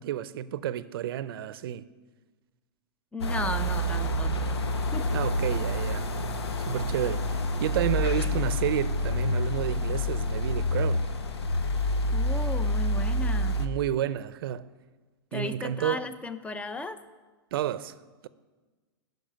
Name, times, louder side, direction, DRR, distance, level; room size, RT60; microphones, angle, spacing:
voice 1, 0.0-1.8 5.1-6.1 6.7-11.1 13.6-14.7 15.3-16.0 17.5-17.9, right 11 dB, 65° right, 0.7 m, -30 dB
voice 2, 3.1-4.5 4.9-5.2 12.1-13.5 15.3-17.0, left 2 dB, 10° left, 0.7 m, -35 dB
sound 1, 3.2-13.7, left 1 dB, 85° left, 1.2 m, -28 dB
15.0 x 6.5 x 9.0 m
hypercardioid pair, 120°, 13 cm